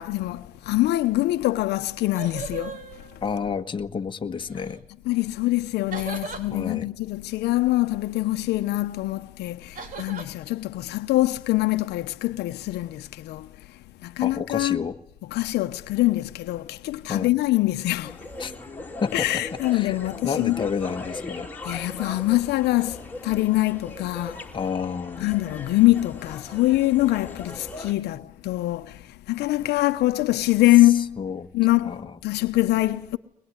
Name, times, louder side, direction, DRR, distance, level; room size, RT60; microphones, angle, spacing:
voice 1, 0.0-3.2 5.0-14.8 15.3-18.2 19.1-20.7 21.6-24.5 25.2-31.2 31.5-33.2, left 17 dB, 80° left, 1.0 m, -24 dB
sound 1, 1.5-1.6 1.9-3.7 4.4-4.8 5.9-6.5 9.8-10.3, right 5 dB, 50° right, 3.6 m, -38 dB
voice 2, 3.2-4.8 6.5-6.9 14.2-15.0 17.1-17.3 18.4-18.5 19.0-19.3 19.7-20.0 20.2-21.5 24.5-25.3 31.2-31.5 31.8-32.1, left 6 dB, 30° left, 1.5 m, -30 dB
sound 2, 18.0-27.9, left 2 dB, 10° left, 3.5 m, -39 dB
22.0 x 21.0 x 9.8 m
cardioid pair, 110°, 17 cm